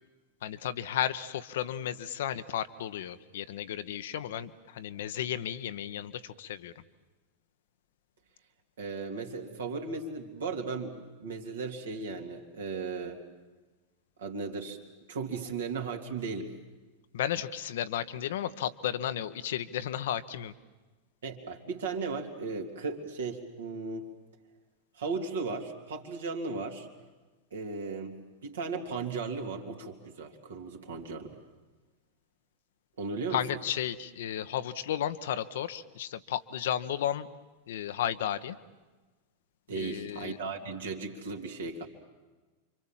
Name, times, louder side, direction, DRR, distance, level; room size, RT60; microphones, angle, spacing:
voice 1, 0.4-6.7 17.1-20.5 33.3-37.3 37.7-38.6 39.7-40.4, left 10 dB, 55° left, 12 dB, 1.0 m, -33 dB
voice 2, 8.8-13.2 14.2-14.8 15.1-16.5 21.2-24.1 25.0-26.9 27.5-28.2 28.4-31.4 33.0-33.4 39.7-41.9, right 4 dB, 65° right, 3 dB, 3.2 m, -36 dB
29.5 x 25.5 x 7.5 m, 1.2 s
figure-of-eight pair, 90°, 0 cm